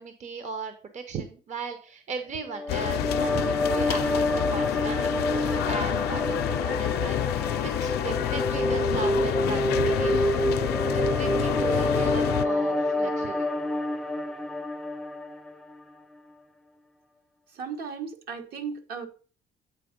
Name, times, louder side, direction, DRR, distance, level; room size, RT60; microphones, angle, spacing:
voice 1, 0.0-10.3 10.9-13.5, right 5 dB, 45° right, 8 dB, 0.9 m, -37 dB
sound 1, 2.4-15.8, left 1 dB, 5° left, 0.5 m, -27 dB
sound 2, 2.7-12.5, left 13 dB, 70° left, 0.5 m, -28 dB
voice 2, 17.5-19.1, right 6 dB, 65° right, 5 dB, 1.4 m, -36 dB
8.3 x 4.4 x 5.2 m, 0.40 s
cardioid pair, 110°, 17 cm